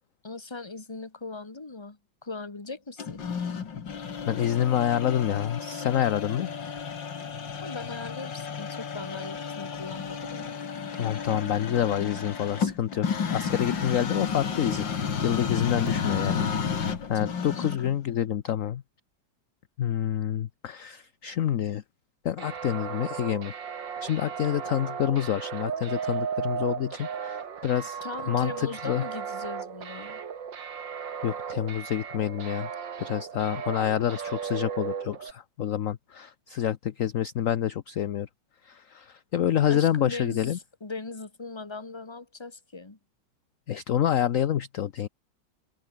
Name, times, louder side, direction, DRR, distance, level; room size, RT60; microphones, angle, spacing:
voice 1, 0.2-3.2 7.6-10.6 17.2-17.6 28.0-30.2 39.7-43.0, left 3 dB, 15° left, 1.6 m, -39 dB
sound 1, 3.0-18.0, left 6 dB, 75° left, 2.8 m, -32 dB
voice 2, 4.3-6.5 11.0-14.9 15.2-18.8 19.8-21.8 22.2-23.5 24.0-28.0 28.3-29.1 31.2-32.7 33.0-38.3 38.6-40.6 43.7-45.1, left 10 dB, 55° left, 1.0 m, -27 dB
sound 2, 22.4-35.3, right 7 dB, 75° right, 2.6 m, -35 dB
omnidirectional pair, 2.1 m